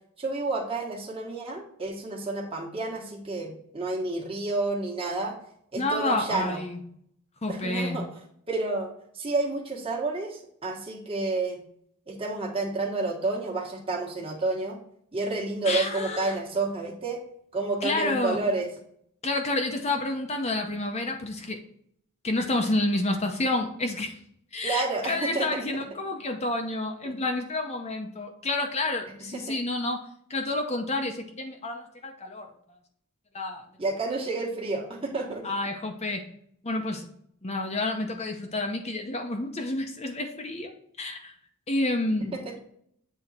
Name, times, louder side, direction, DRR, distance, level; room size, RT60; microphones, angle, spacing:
voice 1, 0.2-5.4 5.7-6.6 7.5-8.0 8.5-11.6 12.1-14.8 15.1-17.2 17.5-18.7 24.6-25.6 27.0-27.2 29.3-29.6 33.8-35.4 42.3-42.6, right 3 dB, 25° right, -2 dB, 1.5 m, -30 dB
voice 2, 5.8-6.8 7.4-8.0 15.6-16.4 17.8-18.4 19.2-21.6 22.2-24.2 24.5-30.0 30.3-32.5 33.3-33.6 35.4-36.2 36.6-37.1 37.4-40.7 41.0-41.3 41.7-42.6, left 2 dB, 30° left, 4 dB, 0.8 m, -29 dB
7.9 x 3.6 x 4.2 m, 0.67 s
head